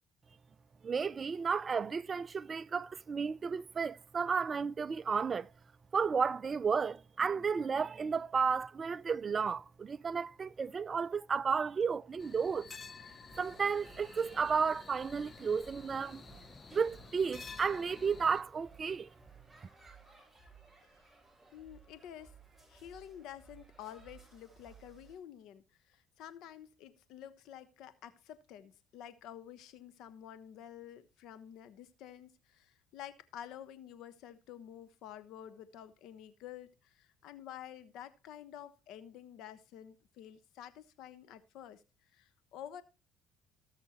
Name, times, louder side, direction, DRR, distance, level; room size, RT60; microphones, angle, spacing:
voice 1, 0.8-5.5 5.9-12.7 13.4-16.2 16.7-19.1, right 5 dB, 35° right, 0.4 m, -33 dB
sound 1, 12.2-18.4, left 5 dB, 30° left, 0.8 m, -52 dB
sound 2, 13.3-25.2, right 5 dB, ahead, 7.1 m, -59 dB
voice 2, 21.5-22.4 22.7-41.8 42.1-42.8, left 10 dB, 75° left, 1.1 m, -50 dB
19.0 x 6.4 x 2.9 m
cardioid pair, 95°, 0 cm